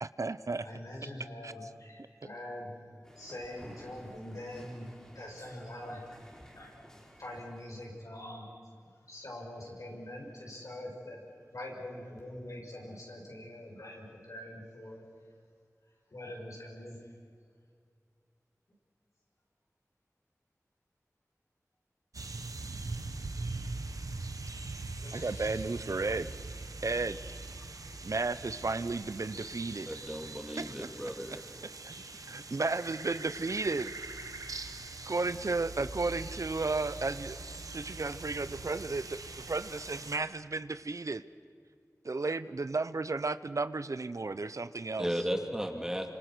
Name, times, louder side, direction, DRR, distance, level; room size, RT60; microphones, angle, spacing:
voice 1, 0.0-0.6 1.4-1.5 25.1-26.3 26.8-27.2 28.0-29.9 30.2-30.3 30.6-30.7 31.6-31.9 32.3-33.9 35.1-41.2 42.0-45.1, right 3 dB, 65° right, 14 dB, 0.7 m, -33 dB
voice 2, 0.6-8.6 9.0-11.2 11.5-15.1 16.1-17.0 25.0-25.7 27.6-27.7, left 1 dB, 75° left, -2 dB, 6.5 m, -44 dB
sound 1, 3.0-8.0, equal, 10° left, 4.8 m, -55 dB
sound 2, 22.1-40.2, right 3 dB, 85° right, 1.2 m, -42 dB
voice 3, 29.9-31.5 45.0-46.1, equal, 10° right, 3 dB, 2.6 m, -35 dB
29.0 x 26.0 x 6.2 m, 2.2 s
wide cardioid pair, 65°, 6 cm